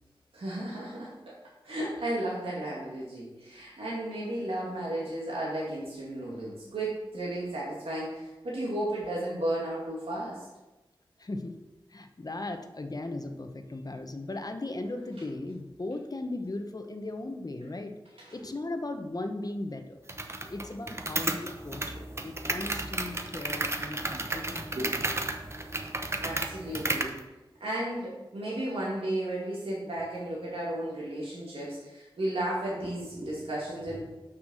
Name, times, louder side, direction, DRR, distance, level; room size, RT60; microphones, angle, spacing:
voice 1, 0.3-1.1 1.6-10.4 24.7-24.9 26.2-27.1 27.6-34.0, right 1 dB, 80° right, -6 dB, 2.1 m, -34 dB
voice 2, 11.2-11.5 11.9-17.9 18.3-20.0 20.5-24.8, left 2 dB, 40° left, 6 dB, 0.9 m, -37 dB
sound 1, 20.1-27.2, right 2 dB, 30° right, 0.9 m, -33 dB
6.3 x 6.1 x 6.2 m, 1.1 s
wide cardioid pair, 55°, 9 cm